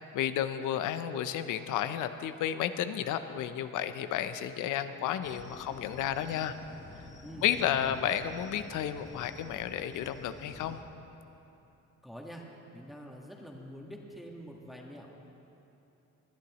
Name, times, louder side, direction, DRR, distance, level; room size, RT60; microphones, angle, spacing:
voice 1, 0.1-6.6 7.4-10.8, left 10 dB, 85° left, 11 dB, 0.6 m, -32 dB
sound 1, 5.2-10.8, left 2 dB, 25° left, 1.7 m, -50 dB
voice 2, 7.2-7.9 12.0-12.4 12.7-15.1, equal, ahead, -1 dB, 1.5 m, -45 dB
20.5 x 11.5 x 3.0 m, 2.9 s
cardioid pair, 90°, 30 cm